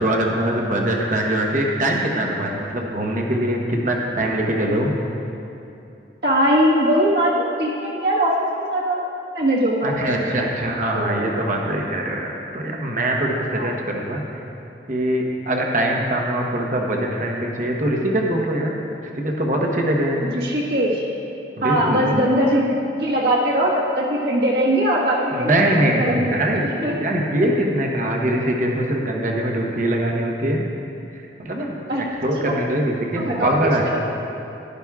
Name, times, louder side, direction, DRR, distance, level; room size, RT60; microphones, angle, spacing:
voice 1, 0.0-4.9 9.8-12.3 12.5-14.2 14.9-18.7 19.2-20.3 21.6-22.1 25.3-30.6 31.1-33.9, right 1 dB, 45° right, 0 dB, 1.0 m, -22 dB
voice 2, 6.2-9.0 9.3-10.3 10.9-11.3 13.6-13.7 20.2-21.0 21.6-27.0 31.9-32.0 32.5-32.6 33.1-33.9, equal, 60° right, -4 dB, 1.5 m, -21 dB
12.0 x 11.5 x 2.4 m, 2.8 s
head